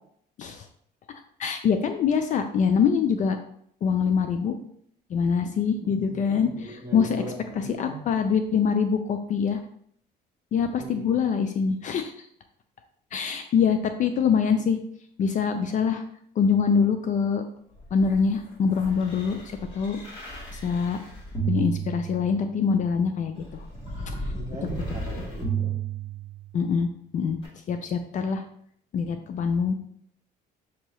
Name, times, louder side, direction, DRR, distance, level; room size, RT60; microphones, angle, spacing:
voice 1, 1.4-3.4 3.8-4.6 5.1-7.2 7.5-9.6 10.5-12.3 13.1-14.8 15.2-16.0 16.4-17.4 17.9-20.0 20.5-21.0 21.5-23.7 24.1-24.2 26.5-26.9 27.1-27.4 27.7-28.4 28.9-29.7, left 6 dB, 50° left, 7 dB, 0.4 m, -24 dB
voice 2, 5.8-8.0 10.8-11.1 24.3-25.7, right 1 dB, 20° right, -2 dB, 1.4 m, -38 dB
sound 1, 17.7-22.6 23.4-26.7 27.4-27.5, right 5 dB, 30° left, 1.6 m, -34 dB
6.0 x 2.7 x 3.0 m, 0.66 s
cardioid pair, 110°, 17 cm